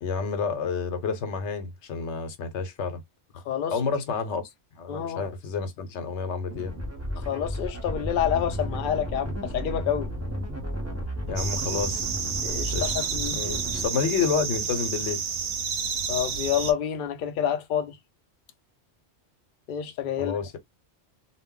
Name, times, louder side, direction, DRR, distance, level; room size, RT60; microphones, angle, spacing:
voice 1, 0.0-3.0 3.7-4.4 4.8-6.7 11.3-12.1 12.7-12.9 13.3-15.2 20.2-20.6, left 5 dB, 80° left, 1.0 m, -29 dB
voice 2, 4.9-5.3 7.2-10.1 12.4-13.4 16.1-18.0 19.7-20.4, left 9 dB, 60° left, 0.6 m, -28 dB
sound 1, 6.5-13.9, equal, 15° right, 0.6 m, -33 dB
sound 2, 11.4-16.7, right 6 dB, 65° right, 0.8 m, -30 dB
2.2 x 2.1 x 3.6 m
omnidirectional pair, 1.2 m